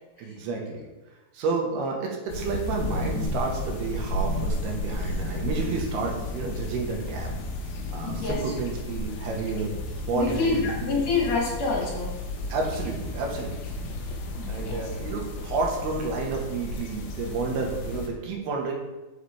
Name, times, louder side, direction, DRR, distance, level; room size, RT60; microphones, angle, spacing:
voice 1, 0.2-0.9 1.3-7.3 7.9-9.8 10.1-11.0 12.5-13.6 14.5-18.7, right 4 dB, 85° right, 0 dB, 3.2 m, -30 dB
sound 1, 2.3-18.1, left 1 dB, 85° left, 1.5 m, -33 dB
voice 2, 8.0-8.4 10.1-12.1 14.4-14.9, left 4 dB, 50° left, -3 dB, 2.5 m, -27 dB
8.0 x 6.7 x 3.4 m, 1.1 s
omnidirectional pair, 4.5 m